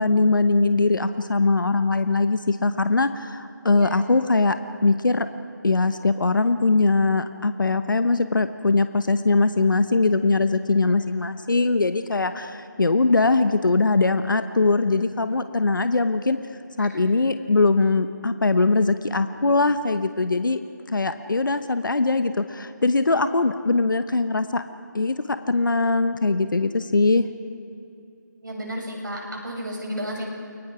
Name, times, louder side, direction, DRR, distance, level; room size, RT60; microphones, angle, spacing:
voice 1, 0.0-4.6 4.8-5.3 5.6-16.4 16.8-20.6 20.9-24.6 24.9-25.2 25.5-27.2, left 3 dB, 80° left, 10 dB, 1.1 m, -21 dB
voice 2, 3.7-4.0 16.8-17.0 28.4-30.3, equal, 75° right, -2 dB, 7.8 m, -33 dB
30.0 x 22.5 x 5.0 m, 2.6 s
figure-of-eight pair, 180°, 11 cm